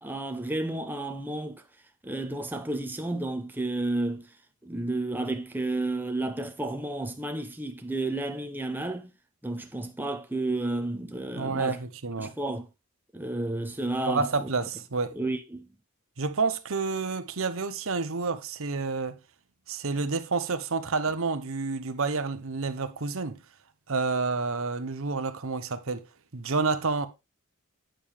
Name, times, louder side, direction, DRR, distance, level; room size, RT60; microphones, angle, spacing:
voice 1, 0.0-1.6 2.0-4.2 4.6-9.1 9.4-11.8 12.2-12.6 13.1-14.3 15.1-15.7, right 2 dB, 10° right, 0.9 m, -31 dB
voice 2, 11.3-12.3 14.1-15.2 16.2-19.2 19.7-23.4 23.9-26.1 26.3-27.1, right 4 dB, 65° right, 0.9 m, -29 dB
9.0 x 6.9 x 3.4 m
head